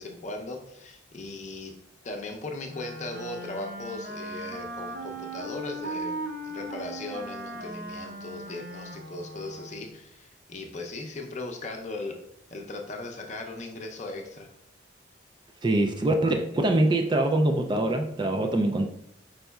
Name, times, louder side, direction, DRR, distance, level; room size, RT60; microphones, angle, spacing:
voice 1, 0.0-1.7 2.0-12.2 12.5-14.5, left 2 dB, 40° left, 2 dB, 0.6 m, -38 dB
Wind instrument woodwind instrument, 2.7-10.0, right 1 dB, 55° right, 0.7 m, -38 dB
voice 2, 15.6-18.9, right 1 dB, 25° right, 4 dB, 0.3 m, -24 dB
5.3 x 4.0 x 2.3 m, 0.77 s
head